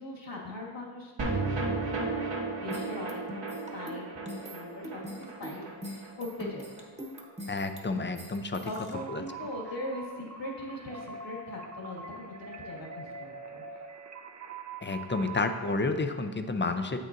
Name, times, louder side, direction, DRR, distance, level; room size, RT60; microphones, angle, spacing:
voice 1, 0.0-6.8 8.6-13.6, left 1 dB, 60° left, -2 dB, 2.1 m, -41 dB
sound 1, 1.2-7.6 7.9-8.0 8.3-8.4, right 3 dB, 75° right, 1.6 m, -35 dB
sound 2, 2.7-8.9, equal, 15° right, 1.1 m, -42 dB
voice 2, 7.5-8.7 9.1-9.2 14.8-17.0, left 3 dB, 25° left, 8 dB, 0.5 m, -30 dB
sound 3, 8.9-15.8, right 3 dB, 35° right, 0.6 m, -43 dB
7.8 x 6.4 x 2.6 m, 1.4 s
cardioid pair, 55°, 48 cm